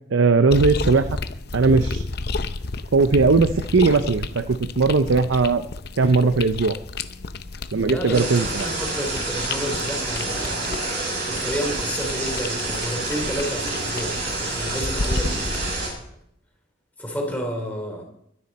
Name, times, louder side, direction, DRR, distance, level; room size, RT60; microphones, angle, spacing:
voice 1, 0.1-1.0 1.5-2.0 2.9-5.6 6.0-6.8 7.7-8.7, right 4 dB, 85° right, 11 dB, 0.6 m, -18 dB
sound 1, 0.5-15.7, left 3 dB, 55° left, 0.7 m, -32 dB
voice 2, 7.9-8.3 8.6-15.9 17.0-18.0, equal, 10° left, 1 dB, 3.4 m, -31 dB
sound 2, 8.1-15.9, right 2 dB, 55° right, 7.0 m, -28 dB
22.5 x 10.0 x 4.2 m, 0.73 s
head